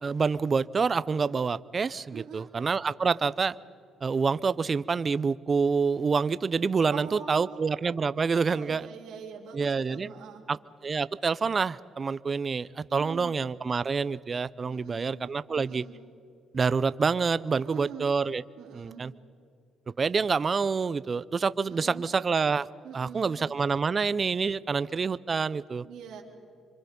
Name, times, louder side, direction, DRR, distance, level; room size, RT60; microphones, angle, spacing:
voice 1, 0.0-3.6 4.0-8.9 9.5-10.1 10.5-10.6 10.8-15.8 16.5-18.4 18.7-19.1 20.0-22.7 22.9-25.8, right 5 dB, 40° right, 16 dB, 0.6 m, -27 dB
voice 2, 2.1-2.5 6.9-7.6 8.5-10.4 12.9-13.3 14.7-15.1 15.5-15.9 17.5-18.1 18.6-19.1 21.7-22.1 22.8-23.4 25.8-26.2, right 7 dB, 80° right, -2 dB, 3.3 m, -43 dB
26.5 x 25.5 x 5.3 m, 2.3 s
cardioid pair, 90°, 0 cm